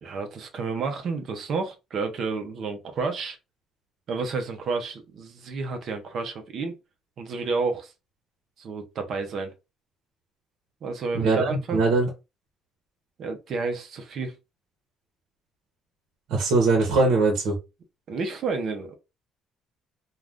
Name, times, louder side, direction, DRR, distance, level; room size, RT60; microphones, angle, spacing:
voice 1, 0.0-3.4 4.1-6.8 7.2-7.9 8.6-9.5 10.8-11.8 13.2-14.3 18.1-19.0, right 4 dB, 40° right, 0.6 m, -30 dB
voice 2, 11.1-12.1 16.3-17.6, right 3 dB, 65° right, 0.9 m, -21 dB
2.5 x 2.3 x 3.4 m
cardioid pair, 180°, 0 cm